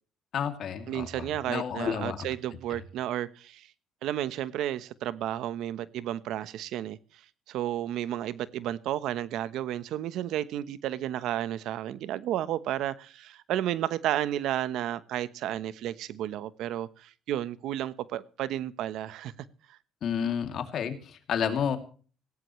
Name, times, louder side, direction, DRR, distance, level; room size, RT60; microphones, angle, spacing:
voice 1, 0.3-2.3 20.0-21.8, left 8 dB, 55° left, 2.7 m, -31 dB
voice 2, 0.9-3.7 4.0-7.0 7.5-19.3 19.7-19.8, right 12 dB, 75° right, 1.0 m, -32 dB
18.0 x 16.5 x 3.2 m
cardioid pair, 100°, 0 cm